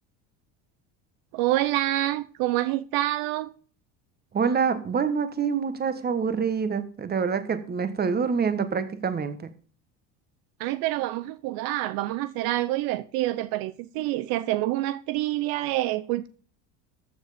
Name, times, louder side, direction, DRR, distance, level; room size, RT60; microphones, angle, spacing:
voice 1, 1.3-3.5 10.6-16.3, right 16 dB, 70° right, 0.7 m, -27 dB
voice 2, 4.3-9.5, right 6 dB, 25° right, 1.4 m, -26 dB
14.0 x 6.5 x 5.1 m
supercardioid pair, 120°, 37 cm